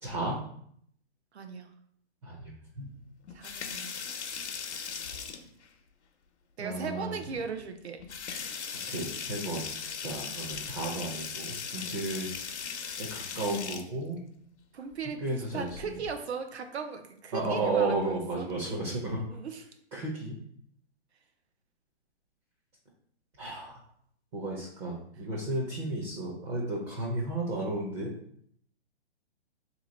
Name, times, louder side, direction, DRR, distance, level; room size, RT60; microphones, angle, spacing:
voice 1, 0.0-0.4 2.2-2.9 6.6-7.2 8.9-9.7 10.0-12.3 13.0-14.2 15.2-15.7 17.3-19.2 19.9-20.4 23.4-23.8 24.3-28.1, right 2 dB, 25° right, -2 dB, 0.6 m, -33 dB
voice 2, 1.3-1.7 3.3-4.2 6.6-8.0 8.3-8.6 14.7-19.7, right 5 dB, 70° right, 7 dB, 0.8 m, -38 dB
Tap Faucet Sink Drain Plug, 3.2-5.7 7.0-7.1 7.5-7.6 8.0-13.9 15.5-16.1, left 6 dB, 80° left, 0.8 m, -38 dB
2.9 x 2.9 x 3.9 m, 0.66 s
hypercardioid pair, 150°, 34 cm